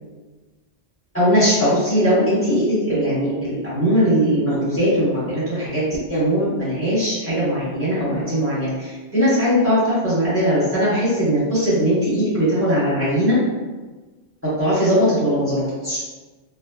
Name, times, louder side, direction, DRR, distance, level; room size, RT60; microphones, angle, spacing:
voice 1, 1.1-13.4 14.4-16.0, equal, 10° left, -12 dB, 1.0 m, -20 dB
3.4 x 2.1 x 2.3 m, 1.3 s
omnidirectional pair, 1.2 m